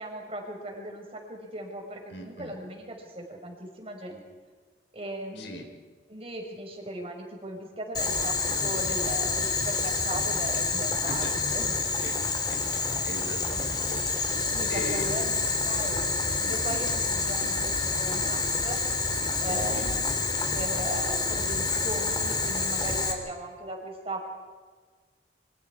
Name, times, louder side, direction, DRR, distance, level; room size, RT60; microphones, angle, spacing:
voice 1, 0.0-4.2 4.9-5.7 6.1-11.7 13.7-13.9 14.5-18.8 19.4-20.0 20.5-24.3, right 1 dB, 30° right, 2 dB, 5.0 m, -38 dB
voice 2, 2.1-2.5 5.4-5.6 11.1-11.3 11.9-12.2 12.5-15.0 16.4-16.8 19.6-19.8, left 1 dB, 75° left, 3 dB, 4.6 m, -40 dB
Boiling, 7.9-23.1, left 3 dB, 20° left, 3.1 m, -28 dB
28.5 x 25.0 x 4.9 m, 1.5 s
head